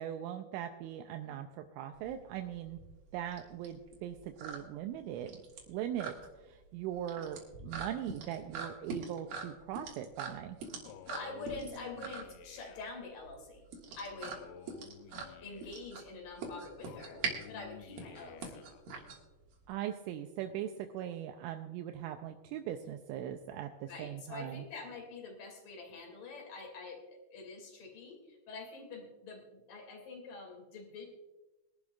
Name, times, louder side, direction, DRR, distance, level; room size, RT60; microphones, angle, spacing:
voice 1, 0.0-2.8 3.1-5.4 5.7-6.1 6.4-10.6 19.7-24.6, right 11 dB, 85° right, 5 dB, 3.0 m, -40 dB
sound 1, 1.9-19.7, right 4 dB, 55° right, 3.0 m, -43 dB
Male speech man speaking, 10.8-13.1 14.1-15.9 16.8-18.8, left 11 dB, 85° left, 3.1 m, -53 dB
voice 2, 11.1-13.6 14.0-14.5 15.4-17.2 17.5-18.7 23.9-31.1, left 3 dB, 50° left, 1 dB, 3.6 m, -46 dB
23.0 x 11.5 x 2.4 m, 1.1 s
omnidirectional pair, 5.7 m